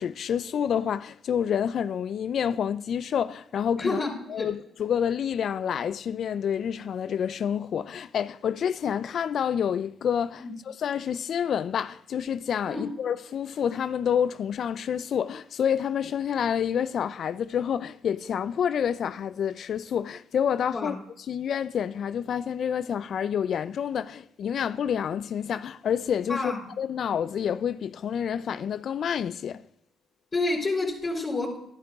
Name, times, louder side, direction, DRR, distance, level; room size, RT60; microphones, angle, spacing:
voice 1, 0.0-4.0 4.3-20.9 21.3-29.6, left 8 dB, 60° left, 0.5 m, -28 dB
voice 2, 3.8-4.5 10.4-10.5 12.7-12.8 20.7-21.0 26.3-26.6 30.3-31.6, left 2 dB, 30° left, 3.7 m, -29 dB
13.5 x 11.5 x 3.6 m
cardioid pair, 90°, 0 cm